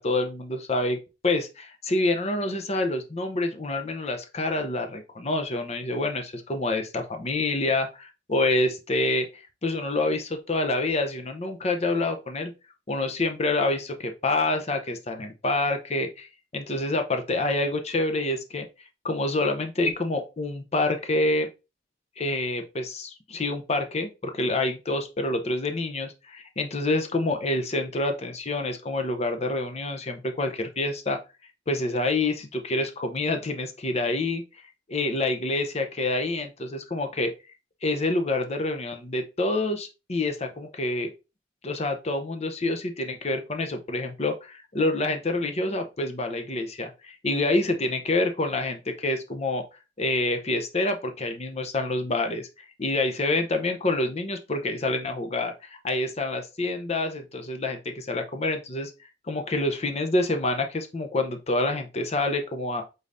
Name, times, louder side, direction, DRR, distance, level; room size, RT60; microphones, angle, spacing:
voice 1, 0.0-12.5 12.9-16.3 16.5-18.7 19.0-21.5 22.2-31.2 31.7-34.4 34.9-37.3 37.8-41.1 41.6-49.6 50.0-52.5 52.8-58.9 59.3-62.8, left 2 dB, 35° left, 5 dB, 0.7 m, -27 dB
5.2 x 3.9 x 2.6 m, 0.29 s
head